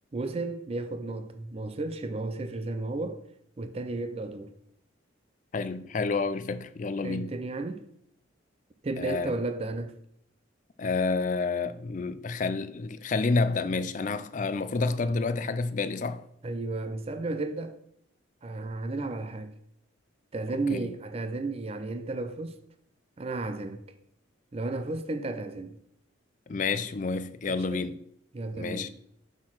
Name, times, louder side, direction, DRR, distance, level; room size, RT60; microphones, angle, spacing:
voice 1, 0.1-3.2 3.6-4.5 7.0-7.8 8.8-9.9 16.4-17.8 18.4-19.5 20.3-22.6 23.2-23.8 24.5-25.8 27.5-27.8 28.3-28.9, right 2 dB, 30° right, 0.4 m, -33 dB
voice 2, 5.5-7.3 9.0-9.3 10.8-16.3 20.7-20.9 26.5-28.0 28.5-28.9, left 4 dB, 40° left, 0.4 m, -29 dB
5.8 x 4.3 x 6.0 m
head